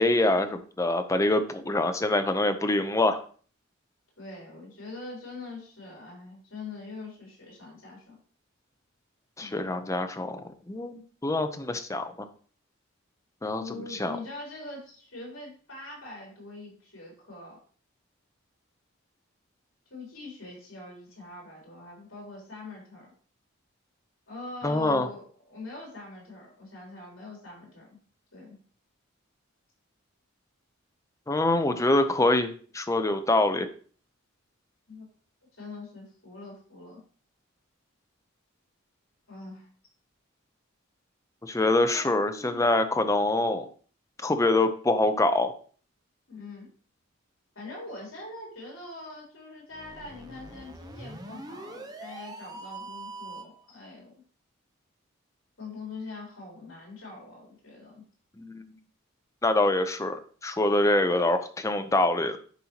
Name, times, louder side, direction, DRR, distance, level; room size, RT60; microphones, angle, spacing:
voice 1, 0.0-3.2 9.4-12.1 13.4-14.2 24.6-25.1 31.3-33.7 41.4-43.7 44.2-45.5 58.4-58.6 59.4-62.4, left 2 dB, 15° left, 8 dB, 0.5 m, -25 dB
voice 2, 4.2-8.2 9.4-9.6 13.5-17.6 19.9-23.1 24.3-28.0 28.3-28.6 34.9-35.1 35.6-37.0 39.3-39.7 41.8-42.7 46.3-46.7 47.6-54.1 55.6-58.0, left 2 dB, 70° left, -2 dB, 3.6 m, -43 dB
sound 1, 49.7-53.6, right 2 dB, 20° right, 0.7 m, -43 dB
10.0 x 4.3 x 2.9 m, 0.43 s
head